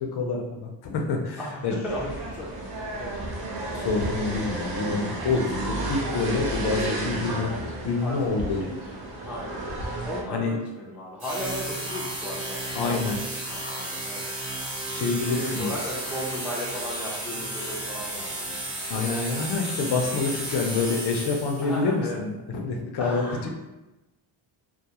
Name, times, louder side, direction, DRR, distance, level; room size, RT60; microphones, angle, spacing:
voice 1, 0.1-1.7 3.7-8.6 10.3-10.5 12.8-13.1 14.9-15.7 18.9-22.3 22.5-23.5, left 4 dB, 55° left, 2 dB, 0.5 m, -27 dB
voice 2, 1.4-3.2 7.1-7.2 8.0-8.2 8.5-9.6 10.0-14.2 15.2-18.6 21.6-22.2 23.0-23.5, equal, 5° right, -5 dB, 0.4 m, -36 dB
sound 1, 1.8-10.2, right 2 dB, 50° right, 0.7 m, -32 dB
sound 2, 11.2-21.8, right 1 dB, 85° right, 1.2 m, -33 dB
2.3 x 2.3 x 2.8 m, 1.0 s
cardioid pair, 120°, 48 cm